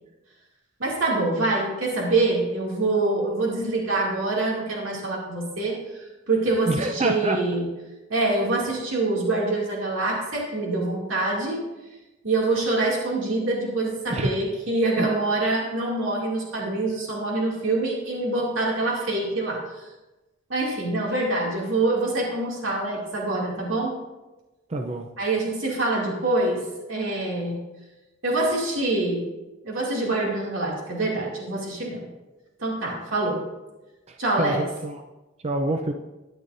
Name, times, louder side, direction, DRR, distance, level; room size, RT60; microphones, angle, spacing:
voice 1, 0.8-5.8 6.3-7.7 8.1-11.6 12.2-19.6 20.5-24.0 25.2-26.6 26.9-27.6 28.2-29.2 29.6-32.0 32.6-33.4 34.2-34.6, right 2 dB, 75° right, -3 dB, 2.4 m, -25 dB
voice 2, 6.7-7.4 14.1-14.4 15.0-15.1 24.7-25.1 34.1-35.0 35.4-35.9, right 2 dB, 35° right, 4 dB, 0.5 m, -27 dB
13.5 x 9.9 x 2.6 m, 1.1 s
head